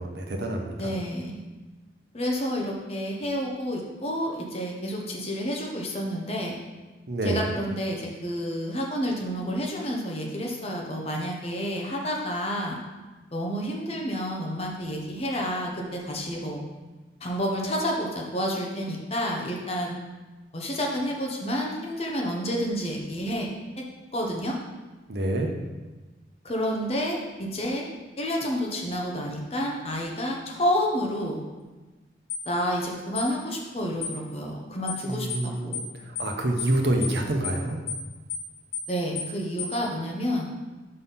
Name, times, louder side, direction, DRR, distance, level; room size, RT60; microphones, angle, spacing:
voice 1, 0.0-0.9 7.1-7.4 25.1-25.5 35.0-35.8 36.2-37.8, right 1 dB, 65° right, 3 dB, 0.9 m, -27 dB
voice 2, 0.8-1.4 2.1-6.6 7.2-12.8 13.3-16.6 17.2-20.0 20.5-23.5 23.8-23.9 24.1-24.6 26.4-27.9 28.2-31.4 32.5-35.9 38.9-40.5, equal, 35° left, 0 dB, 0.9 m, -29 dB
sound 1, 32.3-32.5 33.2-33.3 34.0-34.2 34.9-35.0 35.3-35.5 35.7-35.9 36.2-36.3 36.6-36.8 37.0-37.2 37.4-37.6 37.9-38.0 38.3-38.5 38.7-38.9 39.2-39.3 39.6-39.8, left 7 dB, 70° left, 1.1 m, -32 dB
5.4 x 4.2 x 5.5 m, 1.2 s
head